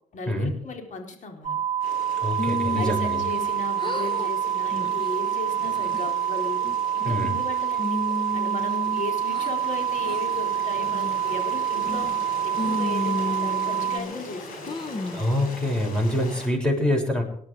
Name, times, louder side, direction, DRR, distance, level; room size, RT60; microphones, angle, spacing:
voice 1, 0.1-1.6 2.7-6.6 6.9-8.0 8.3-12.1 12.4-14.7, left 3 dB, 60° left, 3 dB, 4.4 m, -36 dB
sound 1, 1.4-14.0, right 9 dB, 45° right, 1.1 m, -27 dB
Stream, 1.8-16.5, left 1 dB, 80° left, 5.3 m, -42 dB
voice 2, 2.2-3.2 7.0-7.4 15.1-17.2, left 1 dB, 5° left, 1 dB, 6.8 m, -25 dB
sound 2, 2.4-3.5 3.8-4.3 4.7-5.1 5.6-6.1 6.6-7.4 7.8-9.5 10.0-10.2 10.8-11.2 11.8-12.3 12.6-14.2 14.7-15.3, left 2 dB, 35° left, 1.3 m, -32 dB
19.0 x 11.5 x 5.0 m, 0.67 s
cardioid pair, 80°, 14 cm